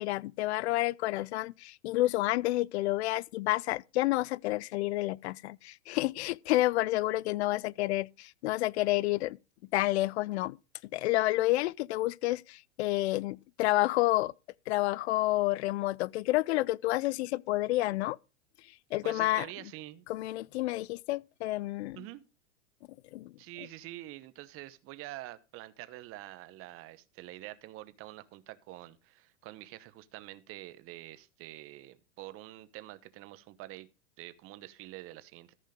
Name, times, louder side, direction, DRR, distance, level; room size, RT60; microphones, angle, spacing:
voice 1, 0.0-9.4 9.7-10.6 10.9-14.3 14.7-18.2 18.9-19.5 20.1-22.0 23.1-23.3, left 18 dB, 60° left, 0.5 m, -29 dB
voice 2, 19.0-20.0 21.9-22.2 23.4-33.9 34.2-35.5, right 16 dB, 35° right, 1.0 m, -46 dB
14.0 x 5.5 x 5.0 m
hypercardioid pair, 115°, 37 cm